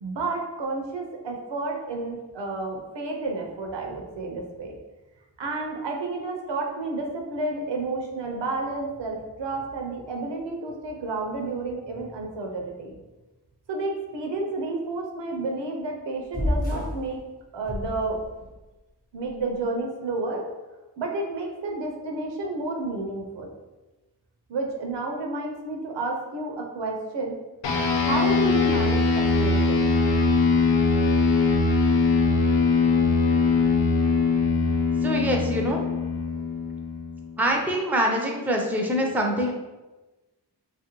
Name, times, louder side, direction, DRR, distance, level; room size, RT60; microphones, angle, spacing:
voice 1, 0.0-4.8 5.4-13.0 13.7-17.2 17.5-18.2 19.1-20.5 21.0-23.5 24.5-27.4 27.9-29.9, right 3 dB, 80° right, 1 dB, 0.6 m, -31 dB
sound 1, 16.3-17.1 17.6-18.5, left 1 dB, 20° left, 0.8 m, -28 dB
sound 2, 27.6-37.4, left 4 dB, 80° left, 0.5 m, -22 dB
voice 2, 35.0-35.8 37.4-39.5, equal, 5° right, 1 dB, 0.4 m, -24 dB
2.6 x 2.4 x 3.0 m, 1.1 s
wide cardioid pair, 55°, 43 cm